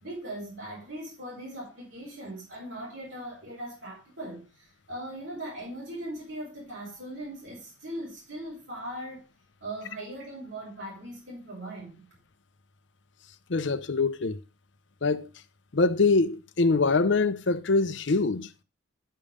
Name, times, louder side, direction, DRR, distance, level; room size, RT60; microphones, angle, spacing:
voice 1, 0.0-9.2 9.6-12.0, right 1 dB, 80° right, 4.1 m, -39 dB
voice 2, 13.5-14.4 15.0-15.3 15.7-18.5, left 3 dB, 75° left, 0.7 m, -24 dB
11.0 x 5.4 x 5.2 m
head